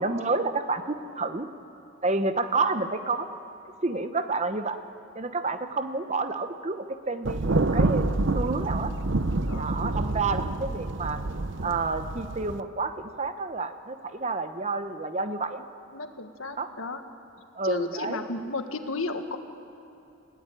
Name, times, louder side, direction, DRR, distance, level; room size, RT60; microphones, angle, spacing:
voice 1, 0.0-1.5 2.0-3.3 3.8-4.8 5.1-8.1 8.3-8.9 9.6-11.2 11.6-15.6 16.6-16.7 17.6-18.2, right 3 dB, 35° right, 9 dB, 1.0 m, -29 dB
Thunder, 7.2-12.6, right 2 dB, 60° right, 0.8 m, -27 dB
voice 2, 9.5-10.0 15.9-17.0 17.6-19.4, left 3 dB, 85° left, 7 dB, 1.7 m, -34 dB
30.0 x 17.0 x 9.2 m, 2.8 s
head